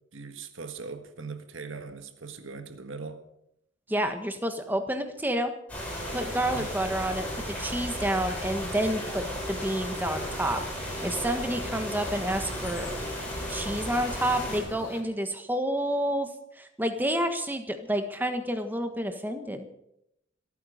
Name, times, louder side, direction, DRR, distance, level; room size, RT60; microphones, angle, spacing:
voice 1, 0.1-3.2 6.5-6.7, right 4 dB, 85° right, 8 dB, 1.7 m, -40 dB
voice 2, 3.9-5.5 6.1-12.9 13.5-16.3 16.6-19.7, right 1 dB, 10° right, 7 dB, 1.5 m, -29 dB
sound 1, 5.7-14.6, equal, 5° left, 5.8 m, -34 dB
sound 2, 10.0-15.0, left 2 dB, 85° left, 3.6 m, -45 dB
26.5 x 9.4 x 5.1 m, 0.78 s
head